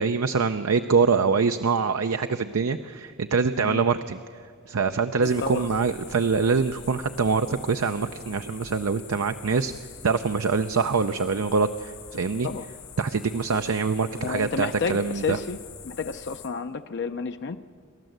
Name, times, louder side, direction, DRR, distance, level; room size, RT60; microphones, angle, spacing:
voice 1, 0.0-4.2 4.7-9.7 10.0-12.5 13.0-15.4, right 5 dB, 75° right, 8 dB, 0.6 m, -24 dB
sound 1, 5.2-16.5, left 7 dB, 80° left, 3.8 m, -45 dB
voice 2, 5.2-5.7 12.4-12.7 14.2-15.6 15.8-17.6, left 4 dB, 55° left, 8 dB, 0.6 m, -31 dB
27.0 x 12.5 x 7.9 m, 2.2 s
head